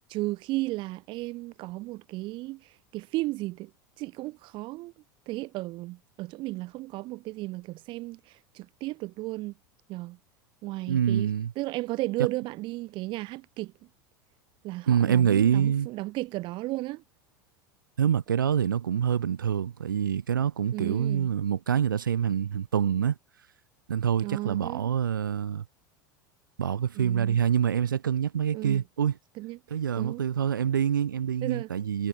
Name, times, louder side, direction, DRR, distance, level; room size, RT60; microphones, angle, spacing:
voice 1, 0.0-3.7 4.0-4.9 5.3-9.5 9.9-10.2 10.6-13.7 14.6-17.0 20.7-21.3 24.2-24.9 26.9-27.4 28.5-28.8 29.4-29.6 30.0-30.3 31.4-31.7, right 20 dB, 50° right, 1.5 m, -34 dB
voice 2, 10.9-11.5 14.9-15.9 18.0-23.1 23.9-25.6 26.6-29.1 29.7-32.1, right 8 dB, 85° right, 1.0 m, -26 dB
hypercardioid pair, 85°, 11 cm